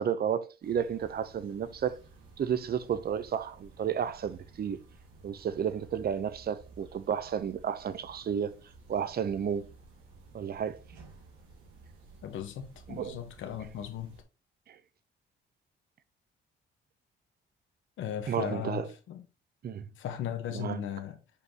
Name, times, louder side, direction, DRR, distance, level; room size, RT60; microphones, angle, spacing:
voice 1, 0.0-2.0 2.4-4.8 5.2-8.6 8.9-9.7 10.3-10.8 12.9-13.2 14.7-14.8 18.3-18.9 19.6-19.9 20.5-20.8, right 8 dB, 50° right, 0.8 m, -32 dB
sound 1, 0.6-14.2, right 3 dB, 85° right, 2.4 m, -55 dB
voice 2, 12.2-14.2 18.0-19.2 20.0-21.2, left 9 dB, 80° left, 1.3 m, -37 dB
6.9 x 5.3 x 3.0 m
cardioid pair, 90°, 20 cm